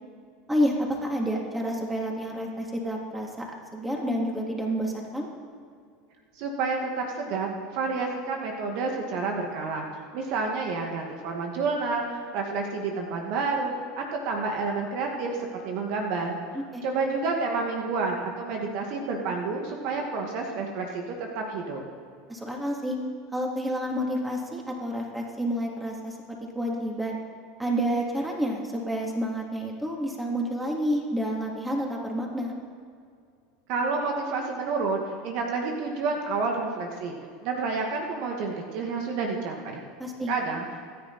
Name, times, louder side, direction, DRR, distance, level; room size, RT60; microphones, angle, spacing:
voice 1, 0.5-5.3 16.5-16.8 22.3-23.0 23.3-27.2 27.6-32.5 40.0-40.3, equal, 10° right, -1 dB, 3.3 m, -29 dB
voice 2, 6.4-9.9 10.1-16.4 16.8-21.8 33.7-37.2 37.4-39.8 40.3-40.7, right 4 dB, 60° right, 2 dB, 2.1 m, -29 dB
26.0 x 10.0 x 4.4 m, 2.3 s
hypercardioid pair, 100°, 0 cm